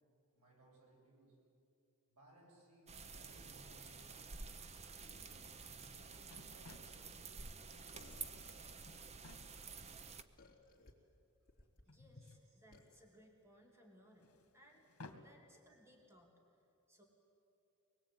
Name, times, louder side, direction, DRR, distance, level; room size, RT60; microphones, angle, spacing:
voice 1, 0.3-1.4 2.1-4.5 5.0-8.3 12.1-12.6, right 2 dB, 85° right, -2 dB, 7.7 m, -66 dB
sound 1, 2.9-10.2, right 5 dB, 30° right, 0.9 m, -51 dB
sound 2, 6.1-7.0 8.1-8.5 8.8-9.5 10.3-10.4 11.9-13.2 14.2-15.3, left 2 dB, 85° left, 2.2 m, -58 dB
sound 3, 7.9-9.3 10.4-10.9 11.5-11.9 12.7-13.0, left 3 dB, 40° left, 3.3 m, -62 dB
voice 2, 11.9-14.9 15.2-16.4 16.9-17.0, equal, 15° right, 1 dB, 3.0 m, -65 dB
24.5 x 21.0 x 9.4 m, 2.7 s
head